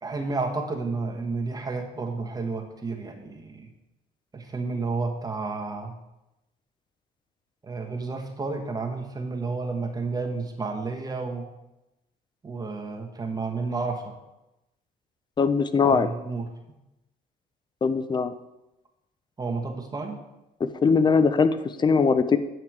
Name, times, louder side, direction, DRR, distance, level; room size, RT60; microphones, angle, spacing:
voice 1, 0.0-3.7 4.3-5.9 7.6-11.5 12.4-14.1 15.8-16.5 19.4-20.2, right 3 dB, 20° right, 2 dB, 1.3 m, -31 dB
voice 2, 15.4-16.1 17.8-18.3 20.6-22.4, left 5 dB, 25° left, 12 dB, 0.6 m, -21 dB
9.0 x 5.8 x 4.7 m, 0.93 s
cardioid pair, 110°, 17 cm